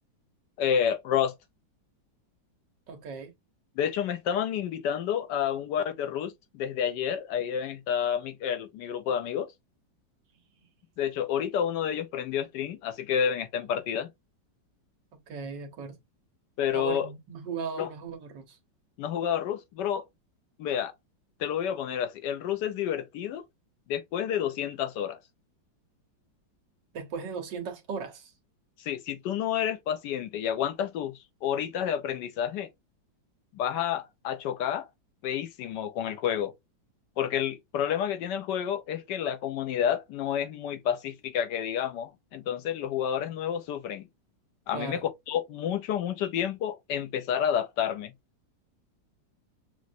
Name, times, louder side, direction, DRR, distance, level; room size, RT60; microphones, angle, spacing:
voice 1, 0.6-1.3 3.8-9.5 11.0-14.1 16.6-17.1 17.8-17.9 19.0-20.0 20.6-20.9 21.4-23.4 23.9-25.2 28.8-31.1 31.4-32.7 33.5-34.9 35.2-36.5 37.2-44.1 44.7-45.0 45.3-48.1, left 9 dB, 75° left, 1.1 m, -29 dB
voice 2, 2.9-3.3 15.3-16.0 16.7-18.6 26.9-28.3 44.7-45.0, right 5 dB, 70° right, 1.7 m, -37 dB
6.1 x 2.5 x 2.6 m
omnidirectional pair, 2.0 m